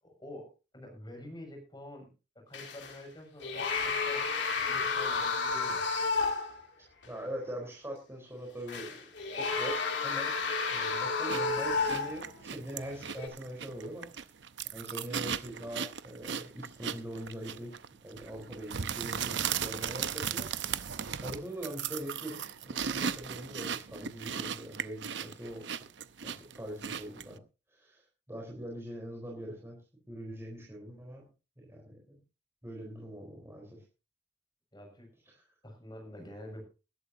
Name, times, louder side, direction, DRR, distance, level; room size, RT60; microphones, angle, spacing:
voice 1, 0.0-2.1 2.3-5.8 34.7-35.1 35.6-36.6, left 1 dB, 25° left, 3 dB, 6.5 m, -47 dB
sound 1, 2.5-3.0 3.4-6.6 7.0-7.1 8.7-12.4 13.1-13.3, left 4 dB, 75° left, 2.8 m, -31 dB
voice 2, 7.1-10.4 10.7-14.1 14.7-17.7 18.0-20.9 21.2-25.7 26.2-27.4 27.7-28.0 28.3-29.8 30.1-31.2 31.6-32.2 32.6-33.8 35.3-35.4, right 1 dB, 15° right, -2 dB, 4.1 m, -42 dB
sound 2, 11.3-27.4, right 7 dB, 80° right, 0.8 m, -37 dB
20.5 x 12.0 x 2.8 m, 0.32 s
head